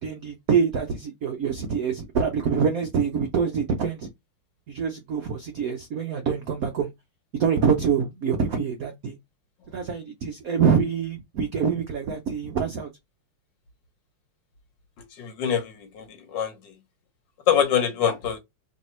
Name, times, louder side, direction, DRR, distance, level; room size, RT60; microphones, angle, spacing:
voice 1, 0.0-4.1 4.7-6.9 7.4-9.2 9.7-12.9, right 6 dB, 80° right, 0.7 m, -25 dB
voice 2, 15.2-16.7 17.5-18.4, left 8 dB, 60° left, 1.5 m, -25 dB
3.4 x 2.7 x 4.2 m
omnidirectional pair, 2.4 m